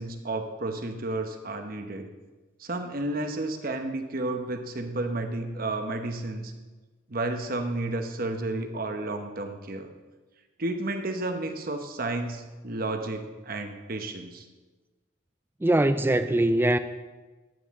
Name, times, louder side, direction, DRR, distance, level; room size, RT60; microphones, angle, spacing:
voice 1, 0.0-2.1 2.6-6.5 7.1-9.9 10.6-14.5, right 2 dB, 50° right, 6 dB, 1.0 m, -32 dB
voice 2, 15.6-16.8, right 1 dB, 10° right, 11 dB, 0.3 m, -22 dB
13.5 x 9.0 x 3.7 m, 1.3 s
head